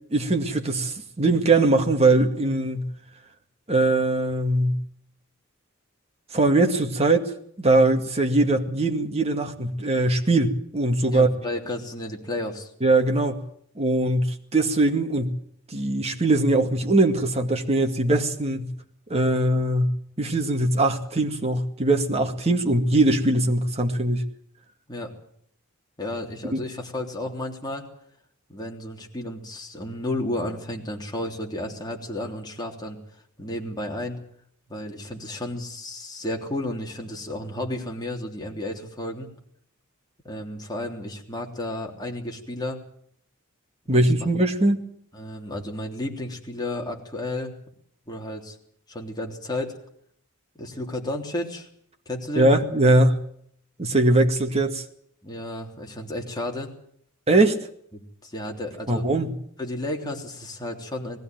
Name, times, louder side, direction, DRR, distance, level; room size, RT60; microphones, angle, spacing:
voice 1, 0.1-2.9 3.7-4.8 6.3-7.3 7.6-11.3 12.8-13.4 13.8-15.4 15.7-18.7 19.1-24.2 26.5-26.6 43.9-44.8 52.4-53.2 53.8-54.8 57.3-57.6 58.9-59.3, right 2 dB, 30° right, 4 dB, 2.1 m, -21 dB
voice 2, 11.1-12.7 24.9-25.1 26.0-27.9 28.5-33.0 33.4-34.2 34.7-39.3 40.2-42.8 43.8-44.3 45.1-47.5 48.1-48.6 48.9-49.7 50.5-51.7 52.0-52.5 55.2-56.7 57.9-59.0 59.6-61.2, left 1 dB, 20° left, 0 dB, 3.3 m, -32 dB
20.0 x 15.5 x 9.3 m, 0.66 s
head